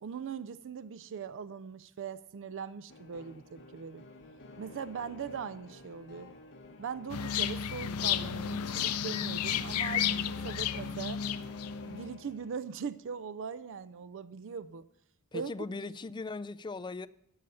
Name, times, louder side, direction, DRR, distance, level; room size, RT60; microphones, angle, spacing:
voice 1, 0.0-4.1 4.6-6.3 6.8-11.2 11.8-14.9 15.3-15.5, right 6 dB, 60° right, 0.4 m, -40 dB
sound 1, 2.9-12.7, left 3 dB, 55° left, 1.7 m, -50 dB
sound 2, 7.1-12.1, left 9 dB, 75° left, 0.5 m, -32 dB
voice 2, 15.3-17.1, left 3 dB, 20° left, 0.3 m, -39 dB
12.5 x 5.6 x 7.7 m
head